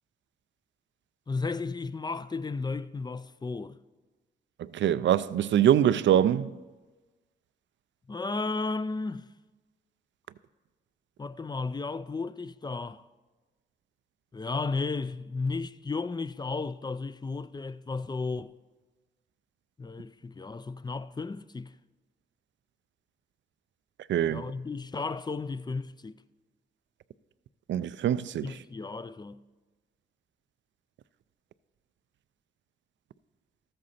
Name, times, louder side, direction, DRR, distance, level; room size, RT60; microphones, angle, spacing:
voice 1, 1.3-3.8 8.1-9.3 11.2-13.0 14.3-18.6 19.8-21.8 24.3-26.2 28.4-29.4, left 3 dB, 20° left, 0.4 m, -34 dB
voice 2, 4.7-6.5 24.1-24.4 27.7-28.5, right 10 dB, 70° right, 0.4 m, -23 dB
13.5 x 7.7 x 4.2 m
cardioid pair, 55°, 20 cm